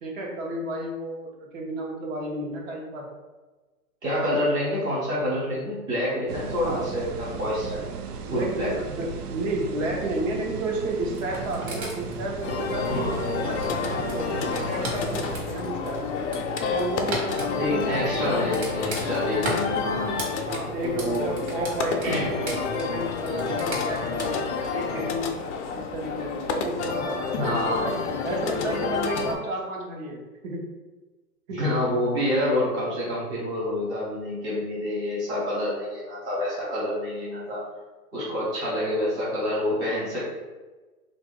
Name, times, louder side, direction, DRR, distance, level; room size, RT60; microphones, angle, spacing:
voice 1, 0.0-3.1 4.2-4.6 8.3-16.0 16.7-18.5 20.5-25.3 25.7-30.6 31.5-31.6 32.2-32.3, right 1 dB, 55° right, -1 dB, 1.0 m, -32 dB
voice 2, 4.0-7.9 8.3-8.7 12.9-13.1 17.6-20.2 20.8-21.4 22.0-22.3 27.3-27.9 31.5-37.6 38.1-40.3, left 1 dB, 10° right, -8 dB, 0.4 m, -27 dB
sound 1, 6.3-15.4, right 6 dB, 75° right, 0.6 m, -36 dB
sound 2, 11.0-24.3, equal, 35° right, 1.2 m, -38 dB
sound 3, 12.4-29.3, left 5 dB, 50° left, 0.5 m, -29 dB
2.9 x 2.6 x 3.7 m, 1.2 s
hypercardioid pair, 130°, 46 cm